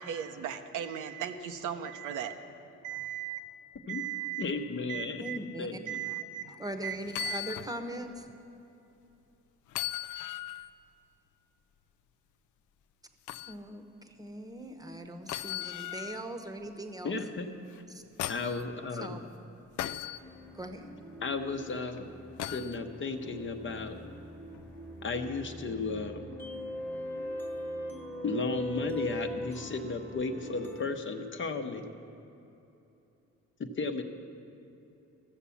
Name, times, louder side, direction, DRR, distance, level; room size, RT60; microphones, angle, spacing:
voice 1, 0.0-2.3 2.8-3.4 3.9-4.4 4.9-5.4 5.9-7.4, right 9 dB, 85° right, 6 dB, 0.8 m, -37 dB
voice 2, 4.4-5.3 5.6-6.0 17.0-17.5 18.3-19.2 21.2-22.1 22.5-24.0 25.0-26.3 28.2-31.8 33.8-34.0, left 3 dB, 40° left, 5 dB, 0.9 m, -34 dB
voice 3, 5.2-5.8 6.6-8.3 13.5-17.2 17.9-18.0 18.9-19.2 20.5-20.9, right 1 dB, 10° right, 6 dB, 1.0 m, -40 dB
sound 1, 7.1-7.7 8.2-8.3 9.7-10.7 13.3-13.6 15.3-16.2 17.7-18.6 19.8-20.2 22.4-22.8 24.5-24.7, left 14 dB, 75° left, 0.5 m, -37 dB
sound 2, 20.2-30.9, equal, 5° left, 1.2 m, -41 dB
14.0 x 7.1 x 7.0 m, 2.9 s
cardioid pair, 90°, 30 cm